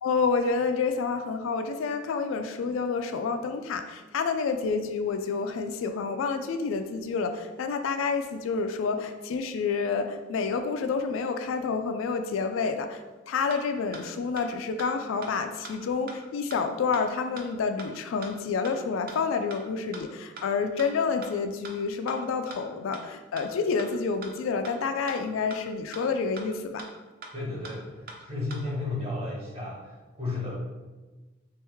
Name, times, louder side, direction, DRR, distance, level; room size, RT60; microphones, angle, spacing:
voice 1, 0.0-26.9, left 5 dB, 75° left, 8 dB, 0.3 m, -29 dB
sound 1, 13.5-13.6 13.9-14.0 14.4-14.5 14.8-14.9 15.2-15.3 15.6-15.7 16.1-16.2 16.5-16.6 16.9-17.0 17.4-17.5 17.8-17.9 18.2-18.3 18.6-18.7 19.1-19.2 19.5-19.6 19.9-20.0 20.4-20.5 20.8-20.9 21.2-21.3 21.6-21.7 22.1-22.2 22.5-22.6 22.9-23.0 23.4-23.5 23.8-23.9 24.2-24.3 24.6-24.7 25.1-25.2 25.5-25.6 25.9-26.0 26.4-26.5 26.8-26.9 27.2-27.3 27.6-27.7 28.1-28.2 28.5-28.6, right 4 dB, 45° right, 0.5 m, -41 dB
voice 2, 27.3-30.5, left 2 dB, 30° right, -6 dB, 1.2 m, -33 dB
3.4 x 3.1 x 3.5 m, 1.2 s
head